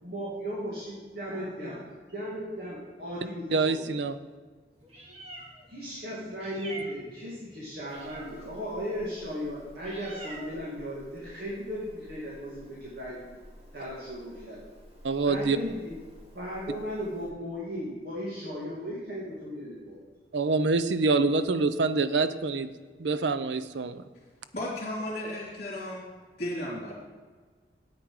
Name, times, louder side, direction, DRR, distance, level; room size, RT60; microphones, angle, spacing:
voice 1, 0.0-1.9 2.1-4.0 5.7-13.3 13.7-14.6 15.2-15.9 16.3-20.1, equal, 60° right, -7 dB, 2.3 m, -36 dB
voice 2, 3.5-4.2 15.0-15.6 20.3-22.7 23.0-24.0, right 3 dB, 80° right, 12 dB, 0.5 m, -26 dB
Meow, 4.7-17.3, right 1 dB, 35° right, 2.0 m, -48 dB
voice 3, 24.5-26.1 26.4-26.9, left 1 dB, 45° left, -7 dB, 2.9 m, -34 dB
9.5 x 8.5 x 4.9 m, 1.4 s
head